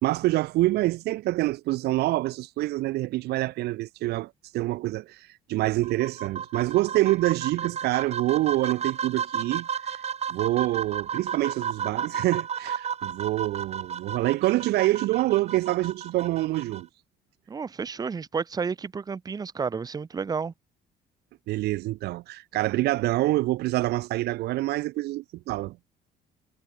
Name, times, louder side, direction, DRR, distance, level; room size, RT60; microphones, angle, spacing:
voice 1, 0.0-10.0 10.3-16.9 21.5-25.8, right 17 dB, 75° right, 0.5 m, -26 dB
sound 1, 5.8-16.8, right 8 dB, 40° right, 1.2 m, -33 dB
voice 2, 17.5-20.5, right 5 dB, 25° right, 0.7 m, -31 dB
cardioid pair, 110°, 17 cm